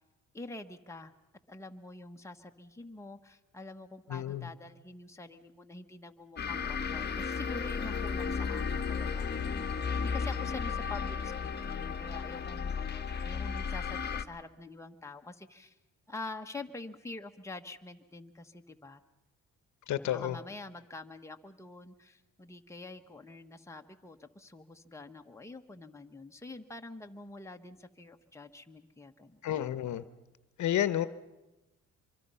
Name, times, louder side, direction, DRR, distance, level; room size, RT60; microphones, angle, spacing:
voice 1, 0.3-1.1 1.5-9.3 9.7-15.8 16.1-19.0 20.0-29.4, left 3 dB, 10° left, 4 dB, 1.3 m, -46 dB
voice 2, 4.1-4.5 19.9-20.4 29.4-30.0 30.6-31.1, left 11 dB, 70° left, 14 dB, 1.0 m, -30 dB
sound 1, 6.4-14.2, left 6 dB, 35° left, 1.3 m, -34 dB
25.0 x 24.0 x 5.6 m, 1.0 s
cardioid pair, 90°, 30 cm